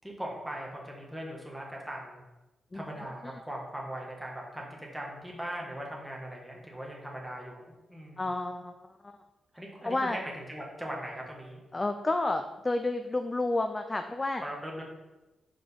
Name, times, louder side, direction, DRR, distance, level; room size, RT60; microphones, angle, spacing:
voice 1, 0.0-2.2 2.7-8.3 9.5-11.6 14.4-14.8, equal, ahead, -2 dB, 1.3 m, -40 dB
voice 2, 8.2-8.7 9.0-9.2 9.8-10.2 11.7-14.4, left 2 dB, 15° left, 6 dB, 0.3 m, -30 dB
5.9 x 5.1 x 5.4 m, 1.1 s
wide cardioid pair, 170°, 0 cm